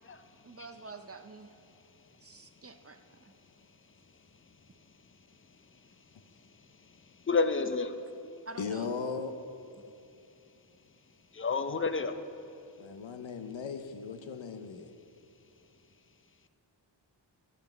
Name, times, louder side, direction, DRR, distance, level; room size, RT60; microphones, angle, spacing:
voice 1, 0.4-1.5 2.2-3.3 8.5-8.9, right 3 dB, 35° right, 7 dB, 0.5 m, -47 dB
voice 2, 7.3-7.9 11.4-12.1, left 4 dB, 30° left, 9 dB, 0.5 m, -28 dB
voice 3, 8.6-9.3 12.8-14.9, left 5 dB, 85° left, 9 dB, 0.8 m, -37 dB
13.0 x 5.4 x 6.1 m, 2.7 s
wide cardioid pair, 100°, 45 cm